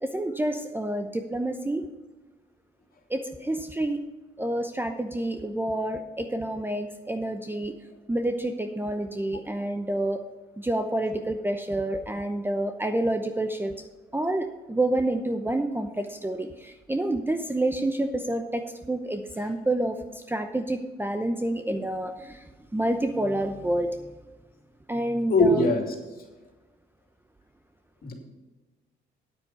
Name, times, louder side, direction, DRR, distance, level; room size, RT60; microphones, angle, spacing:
voice 1, 0.0-1.9 3.1-4.0 4.4-7.7 8.1-10.2 10.6-13.7 14.1-20.0 20.3-22.4 22.7-23.9 24.9-25.6, right 1 dB, 10° right, 6 dB, 0.8 m, -28 dB
voice 2, 25.3-25.9 28.0-28.1, left 2 dB, 50° left, 2 dB, 2.7 m, -21 dB
9.1 x 8.5 x 5.7 m, 1.2 s
cardioid pair, 90°, 20 cm